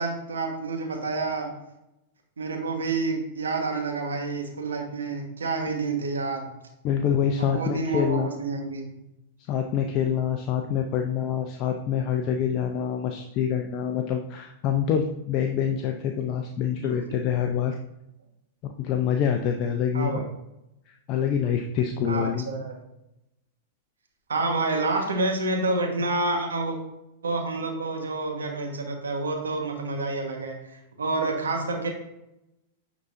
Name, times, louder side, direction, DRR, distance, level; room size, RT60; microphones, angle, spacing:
voice 1, 0.0-1.5 2.4-6.5 7.4-9.0 19.9-20.3 22.0-22.7 24.3-26.8 27.2-30.6 31.0-31.9, right 3 dB, 90° right, 2 dB, 1.3 m, -28 dB
voice 2, 6.8-8.3 9.5-17.8 18.6-20.2 20.9-22.5, left 8 dB, 45° left, 4 dB, 0.5 m, -26 dB
9.3 x 3.9 x 2.6 m, 0.87 s
hypercardioid pair, 110°, 0 cm